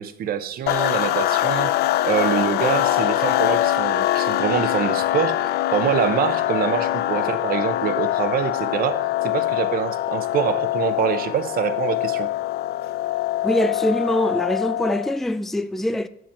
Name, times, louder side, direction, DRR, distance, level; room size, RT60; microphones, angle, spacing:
voice 1, 0.0-1.7 2.0-12.3, right 9 dB, 60° right, 0.9 m, -25 dB
sound 1, 0.7-15.2, left 14 dB, 75° left, 0.5 m, -23 dB
voice 2, 13.4-16.1, left 1 dB, ahead, 0.4 m, -23 dB
7.9 x 5.1 x 7.1 m
cardioid pair, 110°, 17 cm